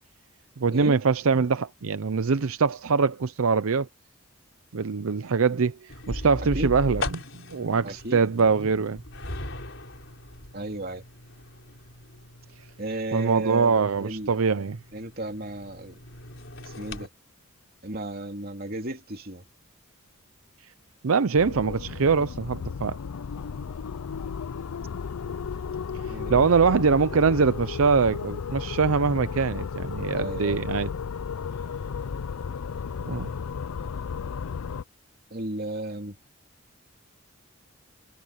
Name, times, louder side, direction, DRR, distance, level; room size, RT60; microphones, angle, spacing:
voice 1, 0.6-3.9 4.7-9.0 13.1-14.8 21.0-23.0 26.0-30.9 33.0-33.3, right 5 dB, 75° right, 0.6 m, -23 dB
sound 1, 5.9-17.1, left 1 dB, 60° left, 4.8 m, -39 dB
voice 2, 7.8-8.2 10.5-11.0 12.8-14.4 14.9-16.0 16.6-17.1 17.8-19.4 26.1-26.4 30.1-30.6 35.3-36.2, right 1 dB, 45° right, 2.9 m, -34 dB
sound 2, 21.4-34.8, left 6 dB, 90° left, 0.5 m, -34 dB
head